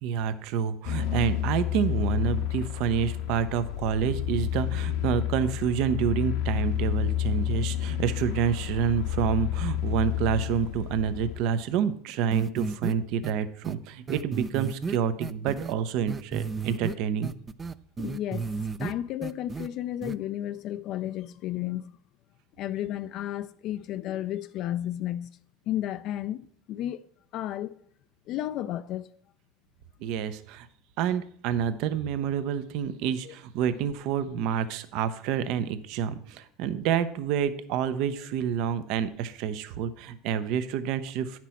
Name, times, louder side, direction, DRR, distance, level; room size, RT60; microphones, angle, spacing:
voice 1, 0.0-17.3 30.0-30.7 31.0-41.4, right 8 dB, 65° right, 0.7 m, -28 dB
sound 1, 0.8-11.4, left 11 dB, 75° left, 0.9 m, -30 dB
sound 2, 12.3-12.9 13.2-13.3 13.6-13.7 14.1-15.7 16.1-16.9 17.2-18.9 19.2-19.7 20.0-20.1, right 5 dB, 20° right, 0.3 m, -33 dB
voice 2, 18.0-22.0 22.6-25.3 25.7-27.1 27.3-27.8 28.3-29.1 33.2-33.3, left 12 dB, 55° left, 0.3 m, -33 dB
9.1 x 6.0 x 4.3 m
supercardioid pair, 115°, 0 cm